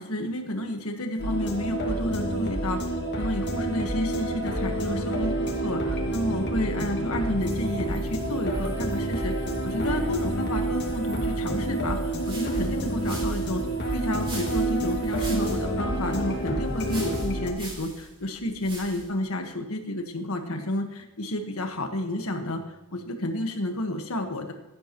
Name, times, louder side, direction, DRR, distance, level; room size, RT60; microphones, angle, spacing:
voice 1, 0.0-2.8 3.2-13.6 13.9-22.6 22.9-24.5, left 1 dB, 75° left, 5 dB, 1.5 m, -30 dB
sound 1, 1.2-17.5, right 1 dB, 50° left, 2.1 m, -28 dB
sound 2, 7.4-15.3, equal, 60° right, 2.8 m, -44 dB
sound 3, 11.8-19.2, right 2 dB, 25° right, 3.5 m, -43 dB
15.5 x 10.5 x 3.0 m, 0.99 s
head